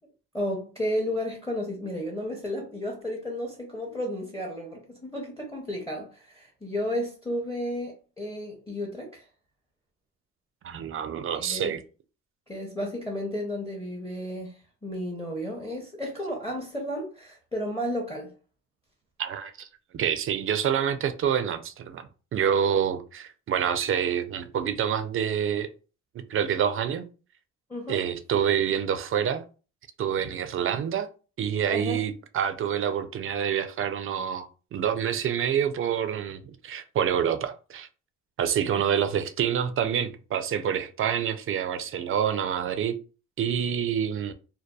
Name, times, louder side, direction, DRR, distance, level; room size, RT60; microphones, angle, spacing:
voice 1, 0.3-9.2 11.3-11.7 12.5-18.3 27.7-28.0 31.7-32.0 38.8-38.9, equal, 10° left, 0.7 m, -33 dB
voice 2, 10.6-11.8 19.2-19.7 19.9-25.7 26.3-27.1 27.9-29.4 30.0-31.1 31.4-34.5 34.7-37.9 38.4-43.0 43.4-44.3, right 8 dB, 45° right, 0.4 m, -27 dB
2.6 x 2.3 x 2.2 m
cardioid pair, 90°, 30 cm